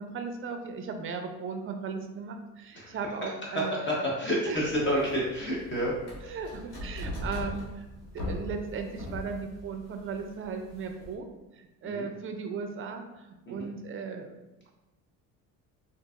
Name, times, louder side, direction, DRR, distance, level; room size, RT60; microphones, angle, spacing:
voice 1, 0.0-3.7 4.5-4.6 6.3-7.9 8.1-11.3 11.6-14.3, right 5 dB, 35° right, 5 dB, 0.5 m, -36 dB
voice 2, 3.4-5.9 6.2-6.4 11.8-12.1 13.5-13.7, equal, 30° left, -4 dB, 0.9 m, -29 dB
sound 1, 4.5-11.1, left 1 dB, 70° left, 1.4 m, -40 dB
3.8 x 2.5 x 2.4 m, 1.0 s
supercardioid pair, 85°, 39 cm